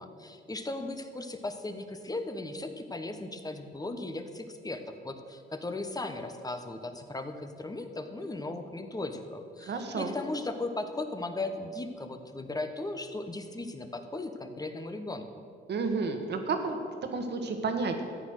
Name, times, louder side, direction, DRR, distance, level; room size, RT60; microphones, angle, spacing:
voice 1, 0.0-15.4, left 2 dB, 20° left, 7 dB, 1.2 m, -37 dB
voice 2, 9.6-10.2 15.7-18.1, right 4 dB, 60° right, 6 dB, 1.7 m, -31 dB
13.5 x 9.0 x 6.4 m, 2.3 s
cardioid pair, 90°, 20 cm